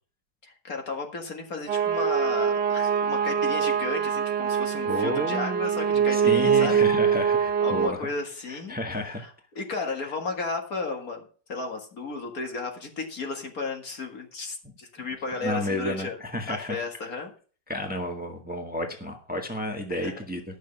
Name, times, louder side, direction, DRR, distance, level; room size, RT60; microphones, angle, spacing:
voice 1, 0.4-6.8 7.6-8.8 9.1-9.3 9.6-16.2 16.5-17.3 19.9-20.2, left 3 dB, 55° left, 3 dB, 2.3 m, -34 dB
sound 1, 1.7-7.9, right 7 dB, 80° right, 1.6 m, -24 dB
voice 2, 4.8-5.7 6.1-8.0 8.5-9.3 15.4-16.7 17.7-20.6, left 1 dB, 5° right, 3 dB, 1.5 m, -31 dB
12.0 x 6.6 x 7.0 m, 0.41 s
omnidirectional pair, 1.8 m